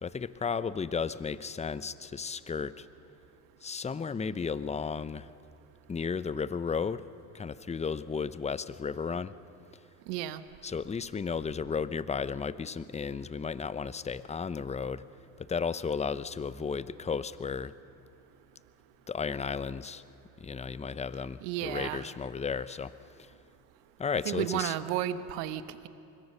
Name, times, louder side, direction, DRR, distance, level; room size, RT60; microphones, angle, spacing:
voice 1, 0.0-2.9 3.6-5.3 5.9-7.0 7.3-9.3 10.6-15.0 15.4-17.7 19.1-20.0 20.4-22.9 24.0-24.7, left 5 dB, 15° left, 16 dB, 0.6 m, -34 dB
voice 2, 10.1-10.4 21.4-22.1 24.2-25.9, right 12 dB, 75° right, 13 dB, 1.2 m, -33 dB
25.0 x 21.5 x 6.7 m, 2.7 s
hypercardioid pair, 75°, 48 cm